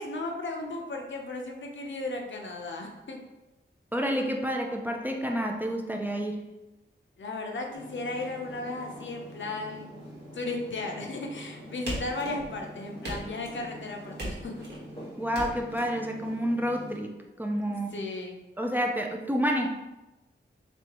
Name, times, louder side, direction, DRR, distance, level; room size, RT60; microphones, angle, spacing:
voice 1, 0.0-3.2 7.2-9.9 10.3-14.7 17.9-18.4, left 2 dB, 70° left, 1 dB, 0.7 m, -35 dB
voice 2, 3.9-6.5 15.2-18.0 18.6-19.7, equal, 10° right, 2 dB, 0.5 m, -29 dB
sound 1, 7.7-17.0, equal, 30° left, 1.4 m, -45 dB
sound 2, 11.9-12.6 13.0-13.7 14.2-14.8 15.3-15.8, right 1 dB, 55° right, 1.4 m, -37 dB
4.3 x 3.2 x 2.9 m, 1.0 s
wide cardioid pair, 80°, 20 cm